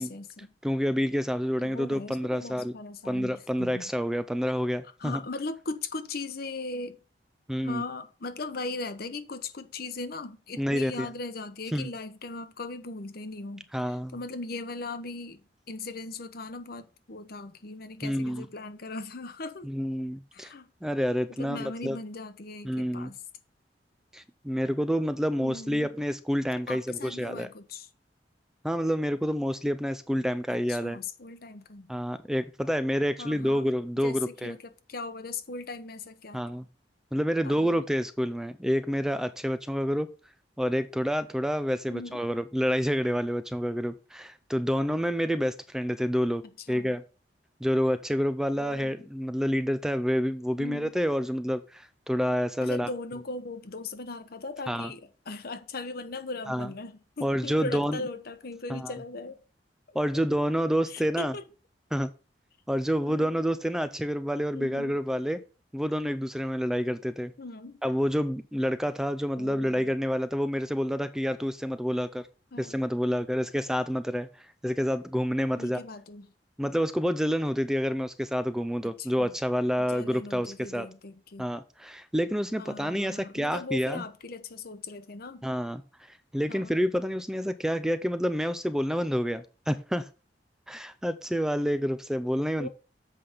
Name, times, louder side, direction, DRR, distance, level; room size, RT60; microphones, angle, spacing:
voice 1, 0.0-0.5 1.6-3.9 5.0-7.0 7.6-15.4 15.7-19.7 20.3-20.7 21.4-23.2 25.4-25.9 26.7-27.9 30.5-31.9 33.2-33.7 34.0-36.4 37.4-37.8 41.9-42.2 46.7-46.9 48.6-49.1 50.6-50.9 52.6-59.4 59.9-60.0 60.9-61.5 63.0-63.3 64.5-65.0 67.4-67.8 69.4-69.9 72.5-72.8 75.6-76.3 78.8-79.3 79.8-81.5 82.6-85.5 86.5-86.8 92.6-92.7, left 3 dB, 60° left, 1.0 m, -39 dB
voice 2, 0.6-2.7 3.0-5.2 7.5-7.8 10.6-11.1 11.7-11.9 13.7-14.2 18.0-18.5 19.6-20.5 20.8-22.0 22.6-23.1 24.1-27.5 28.6-31.0 31.9-34.5 36.3-36.6 37.1-40.1 40.6-46.4 46.7-47.0 47.6-52.9 54.7-54.9 56.5-56.7 57.2-58.0 58.7-58.9 59.9-61.3 61.9-62.1 62.7-65.4 65.7-67.3 67.8-72.2 72.6-74.3 74.6-75.8 76.6-80.9 81.4-84.0 85.4-85.8 86.1-90.1 90.7-92.7, equal, 5° right, 0.4 m, -28 dB
7.8 x 5.1 x 5.5 m
head